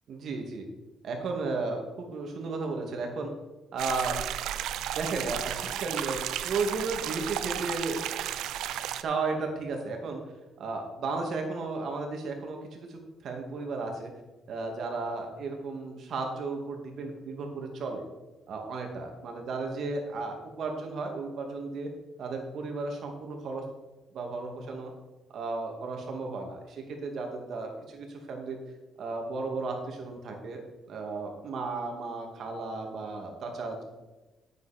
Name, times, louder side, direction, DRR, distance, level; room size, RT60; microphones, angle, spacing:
voice 1, 0.1-0.7 1.0-3.3 3.7-4.2 5.0-8.1 9.0-10.2 10.6-14.1 14.5-18.0 18.5-21.9 22.2-23.6 24.1-24.9 25.3-28.6 29.0-30.6 30.9-33.8, right 3 dB, 65° right, 3 dB, 2.4 m, -34 dB
sound 1, 3.8-9.0, right 11 dB, 85° right, 0.5 m, -33 dB
10.5 x 8.1 x 4.4 m, 1.1 s
cardioid pair, 90°, 0 cm